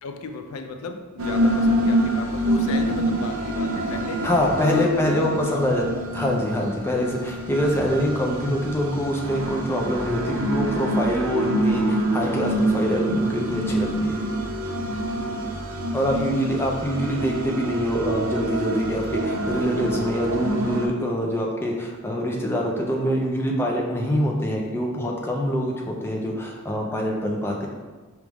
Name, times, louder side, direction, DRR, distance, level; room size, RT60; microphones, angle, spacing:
voice 1, 0.0-4.3 4.6-5.6 6.2-6.3 16.1-16.6, left 4 dB, 80° left, 6 dB, 0.4 m, -34 dB
sound 1, 1.2-20.9, right 1 dB, 65° right, 0.6 m, -26 dB
voice 2, 4.2-5.8 6.1-14.2 15.9-27.7, equal, 10° left, -1 dB, 0.5 m, -25 dB
4.8 x 3.0 x 3.5 m, 1.3 s
head